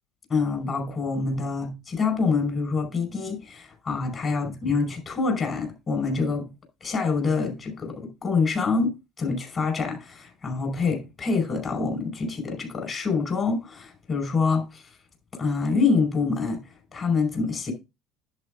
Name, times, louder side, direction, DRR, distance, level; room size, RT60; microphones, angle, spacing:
voice 1, 0.3-6.5 6.8-14.8 15.4-16.6 16.9-17.7, left 4 dB, 35° left, 5.1 m, -26 dB
10.5 x 8.2 x 2.5 m
hypercardioid pair, 65°, 0 cm